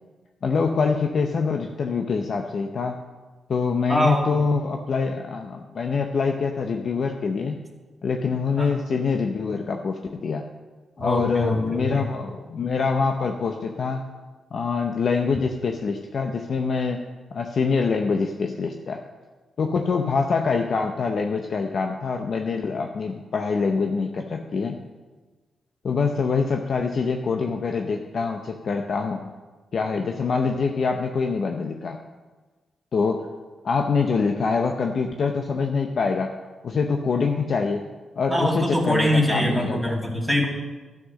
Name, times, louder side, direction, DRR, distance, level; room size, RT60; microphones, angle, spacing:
voice 1, 0.4-3.0 3.5-7.6 8.0-10.4 11.0-14.0 14.5-17.0 17.3-19.0 19.6-24.8 25.8-29.2 29.7-32.0 32.9-33.3 33.6-36.4 36.6-37.9 38.2-39.8, left 5 dB, 60° left, 4 dB, 0.7 m, -25 dB
voice 2, 3.9-4.4 8.6-8.7 11.0-12.1 38.3-40.5, left 1 dB, 5° left, -3 dB, 2.6 m, -23 dB
12.0 x 6.0 x 6.4 m, 1.3 s
cardioid pair, 70°, 0 cm